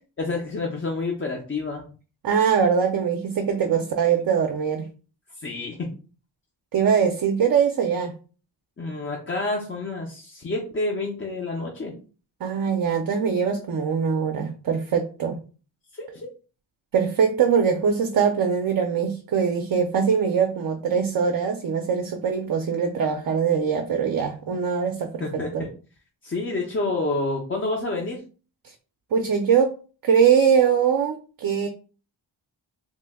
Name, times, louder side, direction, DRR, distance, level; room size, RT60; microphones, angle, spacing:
voice 1, 0.2-1.8 5.4-5.9 8.8-11.9 15.9-16.3 25.2-25.7 26.2-28.2, left 2 dB, 30° left, 0.5 m, -28 dB
voice 2, 2.2-4.9 6.7-8.1 12.4-15.4 16.9-25.3 25.5-25.6 28.6-28.7 29.1-29.7 30.0-31.7, right 7 dB, 50° right, 0.5 m, -22 dB
3.0 x 2.1 x 3.4 m
wide cardioid pair, 115°, 45 cm